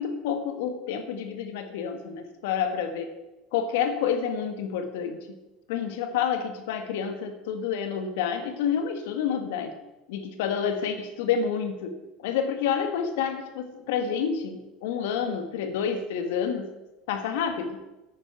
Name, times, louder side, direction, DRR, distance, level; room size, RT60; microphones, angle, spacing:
voice 1, 0.0-3.1 3.5-5.4 5.7-9.7 10.1-11.9 12.2-16.7 17.1-17.8, left 7 dB, 75° left, 8 dB, 1.4 m, -29 dB
9.5 x 8.7 x 5.7 m, 1.1 s
hypercardioid pair, 85°, 0 cm